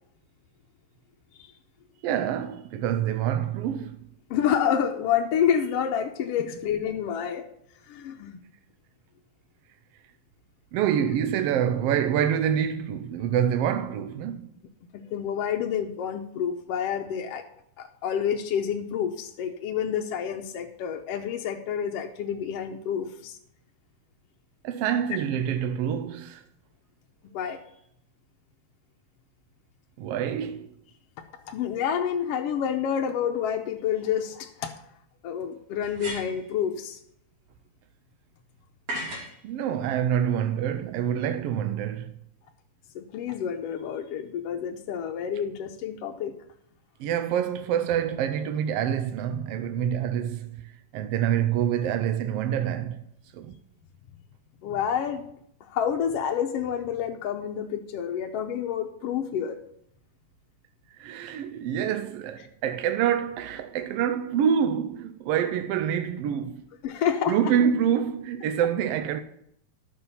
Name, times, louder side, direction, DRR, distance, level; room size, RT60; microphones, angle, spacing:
voice 1, 2.0-4.0 10.7-14.5 24.6-26.4 30.0-30.7 39.4-42.1 47.0-53.0 53.3-53.5 61.0-66.6 67.3-69.2, right 9 dB, 85° right, 1.4 m, -26 dB
voice 2, 4.3-7.5 7.9-8.4 14.9-17.4 17.8-23.4 27.2-27.6 31.5-34.8 35.2-37.0 42.9-46.3 54.6-55.3 55.6-59.6 66.8-67.5, left 8 dB, 70° left, 1.5 m, -28 dB
sound 1, 34.0-34.1 35.8-36.5 38.9-39.4, equal, 65° right, 4.0 m, -35 dB
12.0 x 6.9 x 5.6 m
omnidirectional pair, 3.3 m